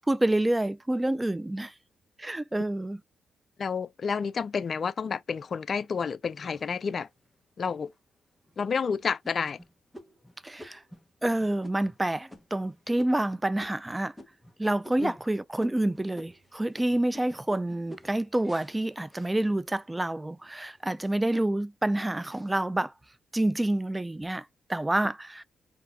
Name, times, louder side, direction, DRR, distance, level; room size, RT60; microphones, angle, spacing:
voice 1, 0.0-1.7 2.2-3.0 10.4-10.8 11.2-14.1 14.6-22.9 23.3-24.4 24.7-25.4, right 1 dB, 15° right, 0.4 m, -28 dB
voice 2, 3.6-7.1 7.6-7.9 8.6-9.6 15.0-15.1, left 6 dB, 55° left, 0.4 m, -30 dB
sound 1, 6.4-7.3 7.9-8.0 8.4-8.8 9.2-14.6 14.8-15.3 15.6-19.9 20.4-20.9, equal, 5° left, 1.4 m, -50 dB
4.0 x 3.5 x 2.8 m
supercardioid pair, 50°, 0 cm